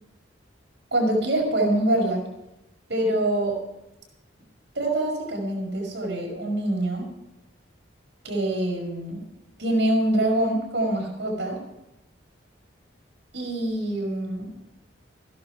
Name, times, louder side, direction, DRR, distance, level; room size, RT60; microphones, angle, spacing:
voice 1, 0.9-2.2 2.9-3.6 4.7-7.1 8.2-9.2 9.6-11.6 13.3-14.5, right 1 dB, 70° right, -1 dB, 5.8 m, -25 dB
15.5 x 12.0 x 4.9 m, 0.91 s
head